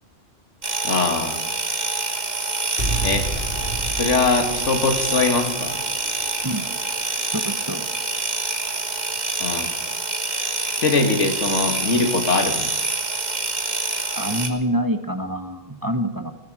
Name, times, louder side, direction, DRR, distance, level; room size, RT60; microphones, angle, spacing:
sound 1, 0.6-14.5, right 3 dB, 35° right, 1.6 m, -26 dB
voice 1, 0.8-1.4 3.0-3.3 4.0-5.8 9.4-9.7 10.8-12.7, left 3 dB, 80° left, 5 dB, 2.3 m, -21 dB
sound 2, 2.8-8.9, right 1 dB, 50° left, 4.0 m, -33 dB
voice 2, 7.3-7.8 14.2-16.3, equal, 20° right, 8 dB, 0.9 m, -26 dB
16.5 x 14.0 x 6.2 m, 1.1 s
omnidirectional pair, 1.2 m